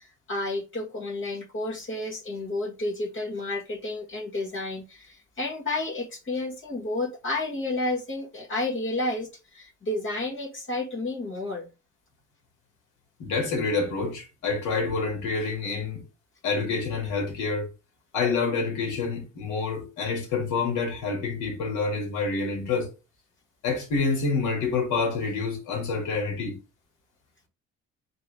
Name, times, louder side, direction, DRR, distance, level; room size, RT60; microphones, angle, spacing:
voice 1, 0.0-11.7, left 2 dB, 40° left, 1.6 m, -31 dB
voice 2, 13.2-16.0 16.4-17.7 18.1-22.9 23.6-26.6, left 4 dB, 85° left, 1.9 m, -27 dB
3.7 x 2.9 x 4.8 m
cardioid pair, 90°, 30 cm